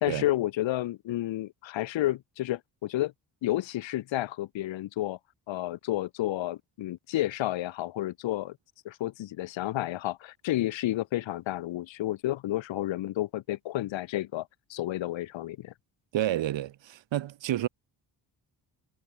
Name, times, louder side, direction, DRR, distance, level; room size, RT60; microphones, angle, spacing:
voice 1, 0.0-3.1 3.4-5.2 5.5-8.6 8.8-15.7, left 15 dB, 65° left, 0.9 m, -31 dB
voice 2, 16.1-17.7, right 12 dB, 65° right, 1.2 m, -29 dB
cardioid pair, 65°, 48 cm